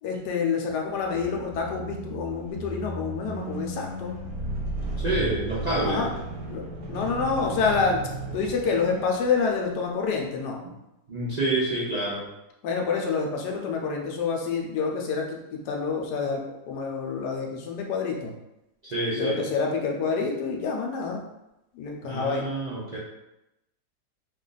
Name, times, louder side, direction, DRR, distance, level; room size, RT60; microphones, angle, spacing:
voice 1, 0.0-4.1 5.8-6.1 6.5-8.0 8.3-10.6 12.6-16.4 16.7-18.3 19.2-21.2 21.7-22.5, left 5 dB, 80° left, 1 dB, 1.2 m, -27 dB
sound 1, 0.9-9.7, right 2 dB, 60° right, 1.0 m, -35 dB
voice 2, 5.0-6.0 11.1-12.3 18.8-19.4 22.0-23.0, right 2 dB, 80° right, -8 dB, 0.3 m, -28 dB
3.0 x 2.4 x 3.8 m, 0.90 s
omnidirectional pair, 1.8 m